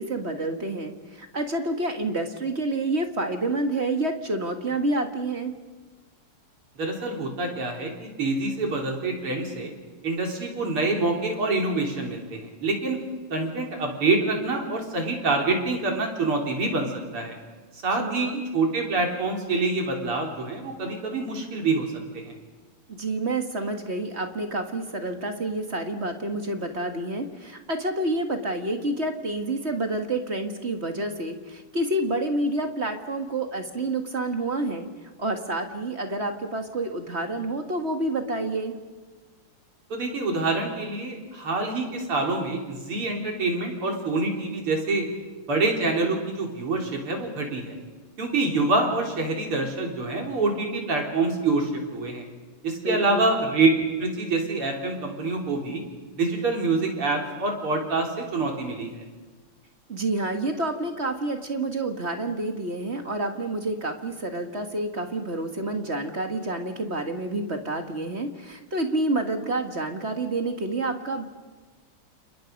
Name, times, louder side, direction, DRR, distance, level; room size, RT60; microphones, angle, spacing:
voice 1, 0.0-5.5 18.0-18.4 22.9-34.9 35.2-38.8 52.8-53.3 59.9-71.2, right 2 dB, 30° right, 5 dB, 1.9 m, -28 dB
voice 2, 6.8-9.7 10.0-13.0 13.3-17.4 17.8-21.9 22.1-22.3 39.9-45.0 45.5-47.8 48.2-52.3 52.6-53.7 54.0-55.8 56.2-59.0, right 3 dB, 80° right, 1 dB, 4.7 m, -26 dB
29.5 x 29.0 x 5.3 m, 1.3 s
omnidirectional pair, 2.4 m